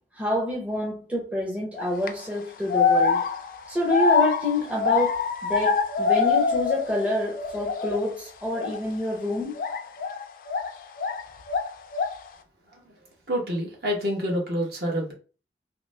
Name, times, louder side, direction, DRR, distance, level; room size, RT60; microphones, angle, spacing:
voice 1, 0.1-3.2 3.7-9.6, left 1 dB, 10° right, 0.6 m, -27 dB
sound 1, 1.8-2.1 2.7-7.1 7.3-8.1 8.5-8.8 9.6-11.2 11.5-12.3, left 5 dB, 50° left, 0.4 m, -24 dB
voice 2, 13.3-15.1, equal, 60° right, 1.1 m, -27 dB
2.9 x 2.7 x 3.2 m
head